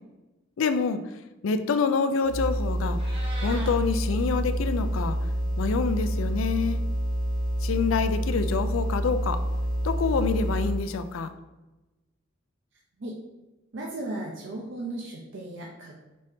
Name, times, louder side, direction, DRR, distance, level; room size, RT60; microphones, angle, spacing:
voice 1, 0.6-1.0 1.4-3.0 3.4-5.2 5.6-6.8 7.6-9.4 9.8-11.3, left 5 dB, 85° left, 10 dB, 0.4 m, -26 dB
sound 1, 2.2-10.9, equal, 45° left, 0.8 m, -28 dB
Meow, 2.8-3.7, right 1 dB, 30° right, 0.9 m, -40 dB
voice 2, 13.7-16.0, right 2 dB, 65° right, -2 dB, 0.6 m, -36 dB
5.2 x 2.7 x 3.4 m, 1.1 s
head